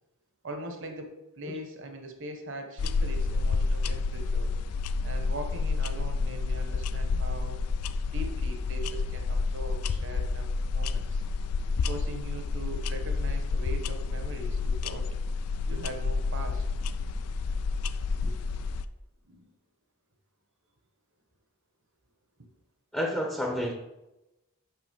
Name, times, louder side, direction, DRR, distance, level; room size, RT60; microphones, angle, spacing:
voice 1, 0.4-4.5 5.0-7.6 8.1-11.2 11.9-15.1 15.7-16.6 18.2-18.3 19.2-19.4, right 1 dB, 55° right, 6 dB, 1.1 m, -41 dB
sound 1, 2.8-18.8, left 4 dB, 90° left, 0.4 m, -29 dB
voice 2, 22.9-23.7, equal, 5° left, 1 dB, 0.7 m, -29 dB
6.2 x 6.0 x 5.2 m, 0.96 s
head